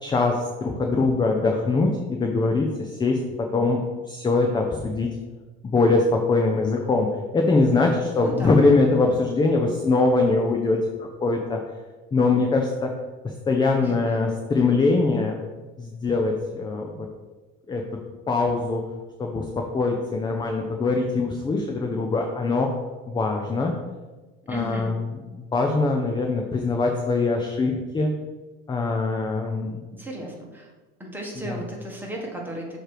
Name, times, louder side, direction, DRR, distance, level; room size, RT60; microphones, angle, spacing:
voice 1, 0.0-5.1 5.6-7.1 7.3-10.8 11.2-11.6 12.1-12.9 13.5-15.4 15.8-17.1 17.7-17.8 18.3-18.8 19.2-22.7 23.1-23.7 24.5-24.9 25.3-28.1 28.7-29.9 31.5-31.6, left 3 dB, 15° left, 2 dB, 0.5 m, -22 dB
voice 2, 8.2-8.6 13.8-14.2 24.5-24.9 29.9-30.7 31.0-32.8, right 1 dB, 5° right, -2 dB, 1.4 m, -35 dB
6.4 x 3.1 x 4.8 m, 1.2 s
supercardioid pair, 110°, 29 cm